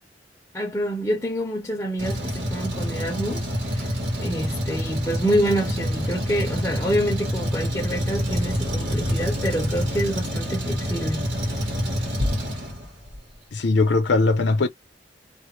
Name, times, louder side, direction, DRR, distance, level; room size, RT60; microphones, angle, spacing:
voice 1, 0.5-3.5 3.8-11.3, equal, 15° left, 0.6 m, -27 dB
Truck, 2.0-13.2, equal, 80° right, 1.2 m, -27 dB
voice 2, 13.5-14.7, left 3 dB, 75° left, 0.6 m, -20 dB
2.4 x 2.1 x 3.0 m
head